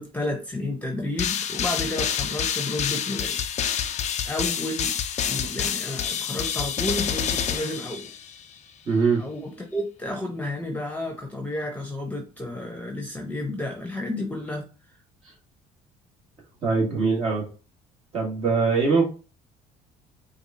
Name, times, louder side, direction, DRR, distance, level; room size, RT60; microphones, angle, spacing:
voice 1, 0.0-3.5 4.3-5.0 5.3-8.1 9.2-14.7, left 1 dB, 10° left, 2 dB, 1.0 m, -31 dB
sound 1, 1.2-8.5, left 8 dB, 50° left, 0.6 m, -28 dB
voice 2, 8.9-9.3 16.6-17.5 18.1-19.1, right 4 dB, 45° right, -3 dB, 1.9 m, -22 dB
4.6 x 2.4 x 2.8 m, 0.34 s
supercardioid pair, 90°, 16 cm